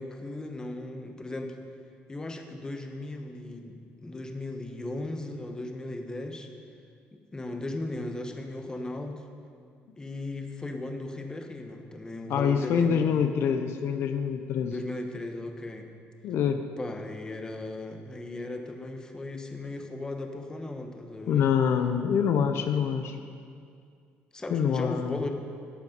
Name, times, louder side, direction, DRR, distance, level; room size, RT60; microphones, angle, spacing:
voice 1, 0.0-1.6 2.1-6.5 7.1-9.2 10.0-13.2 14.6-15.9 16.8-21.5 24.3-25.3, left 2 dB, 15° left, 4 dB, 1.1 m, -37 dB
voice 2, 12.3-14.7 16.2-16.7 21.3-23.2 24.5-25.2, left 7 dB, 65° left, 7 dB, 0.7 m, -25 dB
12.5 x 8.3 x 5.3 m, 2.3 s
cardioid pair, 110°, 4 cm